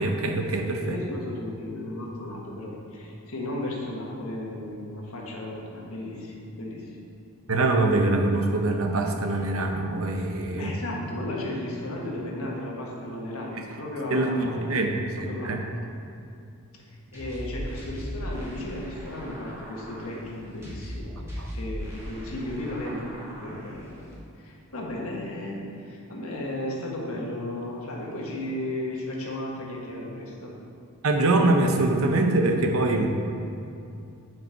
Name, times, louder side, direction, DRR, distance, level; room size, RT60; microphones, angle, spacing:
voice 1, 0.0-1.0 7.5-10.7 14.1-15.6 21.4-21.5 31.0-33.1, right 2 dB, 70° right, 3 dB, 0.8 m, -24 dB
voice 2, 0.8-6.9 10.6-14.9 15.2-15.5 17.1-21.1 21.5-23.9 24.4-30.5, left 1 dB, 75° left, -2 dB, 1.5 m, -34 dB
sound 1, 17.1-24.1, equal, 10° right, 1.5 m, -38 dB
9.3 x 5.3 x 4.6 m, 2.5 s
head